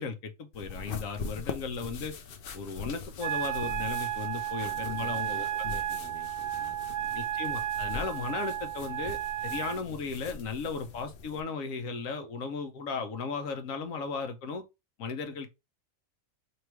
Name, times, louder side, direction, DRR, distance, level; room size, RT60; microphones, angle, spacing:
voice 1, 0.0-2.1 2.5-5.8 7.1-14.6 15.0-15.5, left 5 dB, 75° left, 1.1 m, -36 dB
sound 1, 0.5-11.4, left 4 dB, 55° left, 0.6 m, -42 dB
Wind instrument woodwind instrument, 3.2-9.8, right 12 dB, 65° right, 0.8 m, -33 dB
voice 2, 4.6-7.2, left 1 dB, 10° left, 0.8 m, -51 dB
3.1 x 2.9 x 4.5 m
omnidirectional pair, 1.4 m